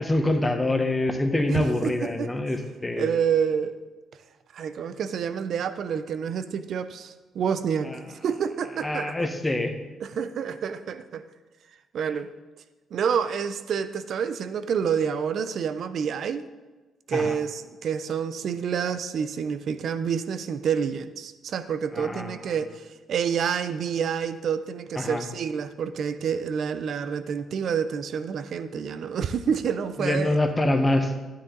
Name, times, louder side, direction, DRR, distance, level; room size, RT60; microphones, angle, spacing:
voice 1, 0.0-3.1 7.8-8.0 8.8-9.7 17.1-17.3 21.9-22.5 25.0-25.2 30.0-31.2, left 1 dB, 15° left, 5 dB, 1.4 m, -25 dB
voice 2, 1.5-1.9 2.2-2.3 3.0-3.8 4.5-9.3 10.0-11.2 11.9-12.3 12.9-16.4 17.1-30.4, right 7 dB, 65° right, 12 dB, 0.7 m, -28 dB
12.0 x 9.6 x 3.9 m, 1.2 s
cardioid pair, 90°, 0 cm